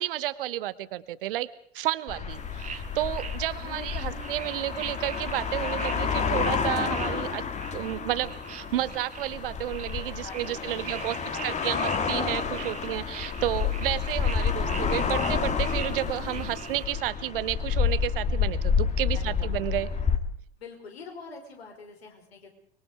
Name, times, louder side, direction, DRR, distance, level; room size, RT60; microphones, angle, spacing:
voice 1, 0.0-1.5 1.7-7.4 7.7-11.2 11.4-19.9, right 14 dB, 55° right, 16 dB, 1.1 m, -31 dB
sound 1, 2.1-20.2, left 6 dB, 20° left, 1.7 m, -29 dB
sound 2, 2.3-16.9, right 8 dB, 20° right, 1.4 m, -44 dB
voice 2, 3.6-4.5 10.2-11.6 14.0-14.1 19.1-19.5 20.6-22.5, left 4 dB, 65° left, 2 dB, 5.2 m, -45 dB
25.0 x 22.5 x 5.0 m, 0.62 s
figure-of-eight pair, 85°, 33 cm